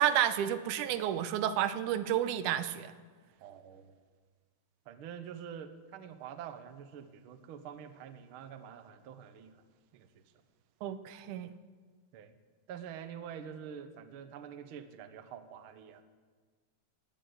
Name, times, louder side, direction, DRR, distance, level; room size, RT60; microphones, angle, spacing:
voice 1, 0.0-2.9 10.8-11.5, right 10 dB, 85° right, 11 dB, 2.2 m, -30 dB
voice 2, 3.4-3.9 4.9-9.6 9.9-10.2 12.1-12.3 12.7-16.0, right 8 dB, 65° right, 9 dB, 1.3 m, -46 dB
16.5 x 10.5 x 7.8 m, 1.5 s
omnidirectional pair, 3.6 m